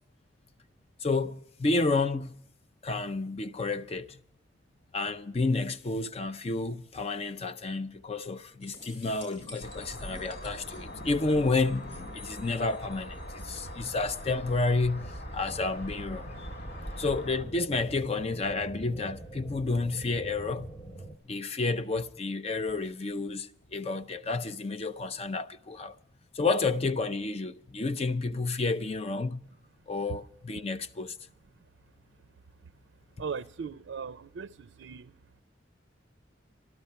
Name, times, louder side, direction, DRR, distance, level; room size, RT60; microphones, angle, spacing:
voice 1, 1.0-2.3 2.8-4.2 4.9-16.3 17.0-20.7 21.3-25.9 26.3-29.4 29.9-31.2, left 3 dB, 35° left, 0.5 m, -30 dB
sound 1, 8.6-14.3 17.2-17.3, left 2 dB, 85° left, 6.9 m, -50 dB
sound 2, 9.6-17.4, equal, 60° left, 1.7 m, -42 dB
sound 3, 10.3-21.2, right 1 dB, 15° left, 0.9 m, -47 dB
voice 2, 33.2-35.1, right 5 dB, 75° right, 0.4 m, -38 dB
13.5 x 12.5 x 5.6 m
head